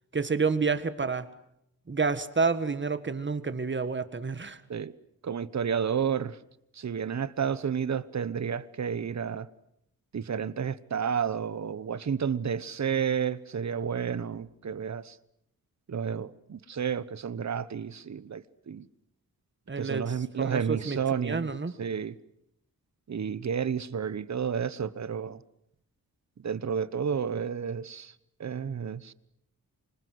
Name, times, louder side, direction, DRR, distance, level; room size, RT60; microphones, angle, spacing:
voice 1, 0.1-1.2 1.9-4.6 19.7-21.7, right 4 dB, 30° right, 1.7 m, -29 dB
voice 2, 5.2-6.4 6.7-9.5 10.1-15.2 15.9-18.9 19.8-21.5 21.8-22.1 23.1-25.4 26.4-28.1 28.4-29.1, right 7 dB, 50° right, 1.1 m, -31 dB
26.0 x 26.0 x 7.9 m
wide cardioid pair, 130°, 36 cm